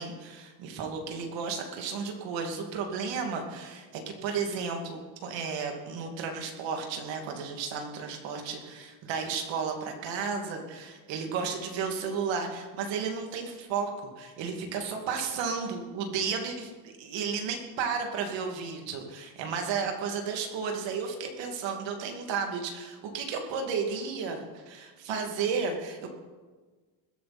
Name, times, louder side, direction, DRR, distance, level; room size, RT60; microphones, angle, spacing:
voice 1, 0.0-26.1, right 5 dB, 60° right, 3 dB, 2.6 m, -33 dB
21.0 x 12.0 x 4.4 m, 1.4 s
cardioid pair, 125°, 49 cm